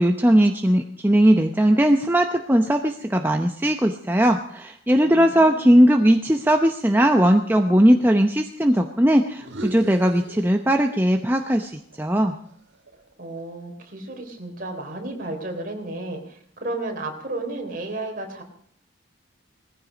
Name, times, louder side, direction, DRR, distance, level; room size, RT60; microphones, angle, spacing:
voice 1, 0.0-12.4, equal, 10° right, 4 dB, 0.7 m, -19 dB
voice 2, 5.0-5.8 13.2-18.4, right 2 dB, 45° right, 2 dB, 3.6 m, -33 dB
sound 1, 9.3-11.1 11.4-13.6, right 1 dB, 60° right, 1.8 m, -41 dB
19.0 x 15.0 x 5.1 m, 0.64 s
head